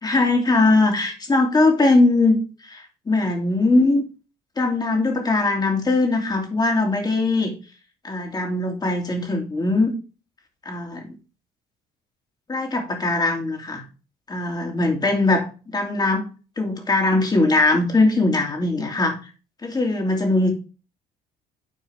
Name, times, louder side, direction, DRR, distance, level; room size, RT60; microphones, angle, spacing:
voice 1, 0.0-2.4 2.6-4.0 4.6-7.5 8.0-9.9 10.6-11.1 12.5-13.8 14.3-16.2 16.6-19.2 19.6-20.5, left 2 dB, 25° left, 2 dB, 2.8 m, -20 dB
12.0 x 4.5 x 3.4 m, 0.33 s
cardioid pair, 110°, 17 cm